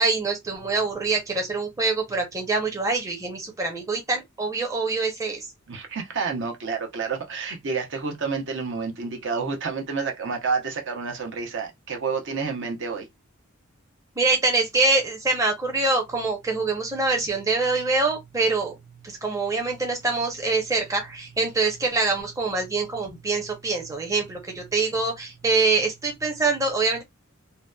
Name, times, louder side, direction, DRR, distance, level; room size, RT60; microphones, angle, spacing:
voice 1, 0.0-5.4 14.2-18.8 19.0-27.0, right 3 dB, 15° right, 0.6 m, -25 dB
voice 2, 5.7-13.1, right 5 dB, 60° right, 0.6 m, -29 dB
2.7 x 2.1 x 2.2 m
head